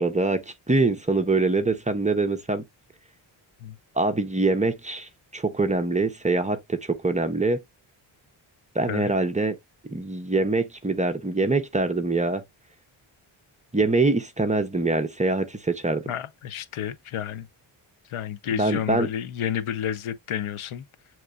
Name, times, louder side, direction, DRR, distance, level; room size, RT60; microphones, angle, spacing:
voice 1, 0.0-2.6 4.0-7.6 8.7-9.5 9.8-12.4 13.7-16.0 18.5-19.1, right 3 dB, 15° right, 0.5 m, -24 dB
voice 2, 16.1-17.5 18.1-20.9, left 9 dB, 90° left, 0.6 m, -30 dB
7.7 x 3.1 x 2.3 m
wide cardioid pair, 175°, 48 cm